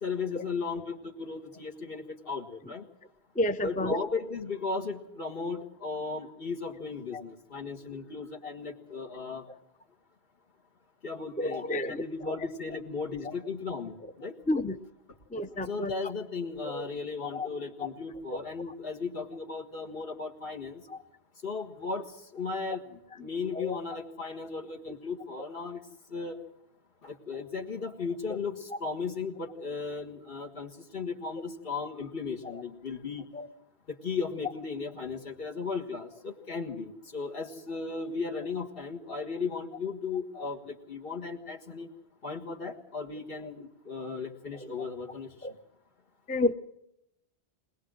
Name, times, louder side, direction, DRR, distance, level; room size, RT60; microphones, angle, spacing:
voice 1, 0.0-2.9 3.6-9.4 11.0-14.3 15.7-20.8 21.4-22.1 22.3-22.8 23.2-25.8 26.1-26.4 27.0-33.2 34.0-41.9 42.2-45.3, left 4 dB, 60° left, 2 dB, 1.9 m, -36 dB
voice 2, 3.4-4.0 7.1-7.2 11.4-12.5 13.2-13.3 14.5-14.8 15.3-15.9 16.6-16.9 17.2-17.5 17.8-17.9 18.3-18.4 20.9-21.0 23.5-23.8 28.3-28.4 32.4-32.6 33.3-33.5 40.4-40.5 45.4-45.5 46.3-46.5, left 1 dB, 10° left, 9 dB, 0.6 m, -31 dB
21.0 x 20.5 x 6.3 m, 0.83 s
omnidirectional pair, 1.1 m